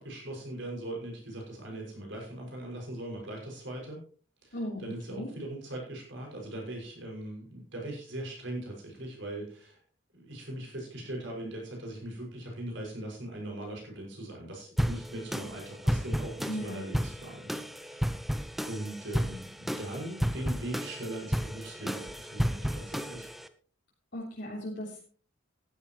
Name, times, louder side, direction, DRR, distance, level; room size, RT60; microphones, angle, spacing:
voice 1, 0.0-4.0 4.4-9.8 10.1-18.1 18.6-23.3, right 1 dB, 60° right, 0 dB, 6.2 m, -40 dB
voice 2, 4.5-5.3 16.5-16.9 24.1-25.1, equal, 55° left, -5 dB, 3.6 m, -37 dB
sound 1, 14.8-23.5, equal, ahead, 0.6 m, -33 dB
15.0 x 12.0 x 3.1 m, 0.42 s
head